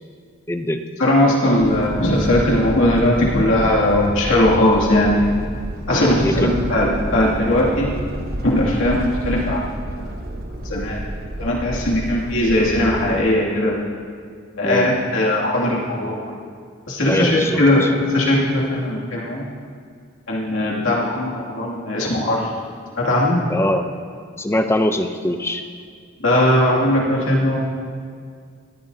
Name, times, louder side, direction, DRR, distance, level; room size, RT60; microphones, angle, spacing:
voice 1, 0.5-0.8 6.2-6.5 14.6-14.9 17.1-17.9 23.5-23.9 24.4-25.7, left 1 dB, 10° left, 7 dB, 0.5 m, -22 dB
voice 2, 1.0-5.3 5.9-7.9 8.4-10.0 10.7-11.0 11.4-13.7 14.6-16.4 16.9-19.5 20.3-22.5 23.0-23.4 26.2-27.6, left 1 dB, 70° left, -4 dB, 2.4 m, -19 dB
sound 1, 1.6-13.2, right 1 dB, 45° right, 1.1 m, -29 dB
17.5 x 13.5 x 2.8 m, 2.1 s
head